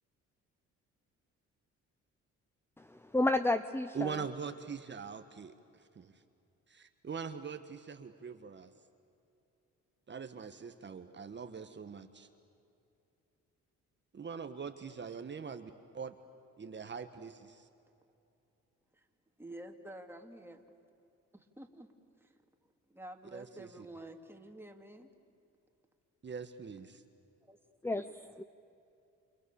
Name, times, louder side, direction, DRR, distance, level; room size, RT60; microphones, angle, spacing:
voice 1, 2.8-4.2 27.8-28.4, left 2 dB, 10° left, 11 dB, 0.8 m, -32 dB
voice 2, 3.9-6.1 6.7-8.7 10.1-12.3 14.1-16.2 16.6-17.7 23.3-23.9 26.2-27.0, right 6 dB, 35° right, 8 dB, 1.5 m, -43 dB
voice 3, 19.4-20.6 21.3-21.9 22.2-22.3 22.9-25.1 27.4-27.6, right 1 dB, 5° right, 4 dB, 2.9 m, -49 dB
29.5 x 28.0 x 7.1 m, 2.7 s
cardioid pair, 90°, 30 cm